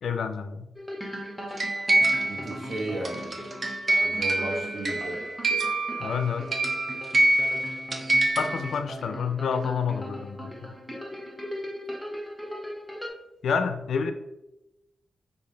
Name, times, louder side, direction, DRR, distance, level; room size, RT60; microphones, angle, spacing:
voice 1, 0.0-0.6 6.0-6.5 8.4-10.5 13.4-14.1, left 6 dB, 85° left, 0.3 m, -28 dB
sound 1, 0.8-13.1, equal, ahead, 0.7 m, -38 dB
sound 2, 1.6-8.8, right 2 dB, 45° right, 0.5 m, -26 dB
voice 2, 2.2-3.3 4.0-5.2, right 2 dB, 70° right, 1.0 m, -34 dB
3.1 x 2.5 x 3.8 m
cardioid pair, 90°, 0 cm